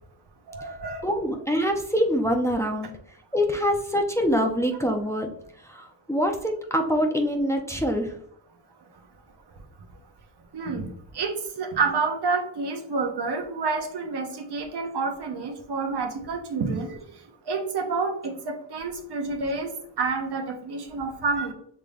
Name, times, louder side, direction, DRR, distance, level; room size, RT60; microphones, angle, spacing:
voice 1, 0.5-1.0 10.5-10.9 11.1-17.0 17.5-21.5, right 4 dB, 60° right, 4 dB, 1.1 m, -29 dB
voice 2, 1.0-2.9 3.3-5.3 5.6-8.1, equal, 5° left, 2 dB, 0.8 m, -25 dB
5.9 x 3.4 x 2.5 m, 0.67 s
supercardioid pair, 50°, 45 cm